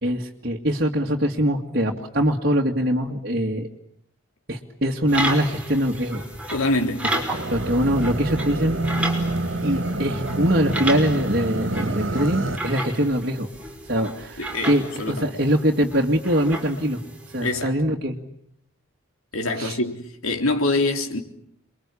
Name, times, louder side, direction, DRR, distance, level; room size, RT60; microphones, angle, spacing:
voice 1, 0.0-3.7 4.5-6.2 7.1-7.2 7.5-8.8 9.6-13.5 13.9-17.0 17.3-18.2 19.6-19.8, equal, 45° right, 2.3 m, -23 dB
sound 1, 5.1-17.6, right 1 dB, 5° right, 5.3 m, -33 dB
voice 2, 6.5-7.0 14.4-14.7 15.0-15.3 17.4-17.7 19.3-21.2, left 2 dB, 80° left, 3.9 m, -24 dB
sound 2, 7.3-12.6, right 2 dB, 65° right, 2.3 m, -27 dB
29.0 x 23.0 x 8.5 m
head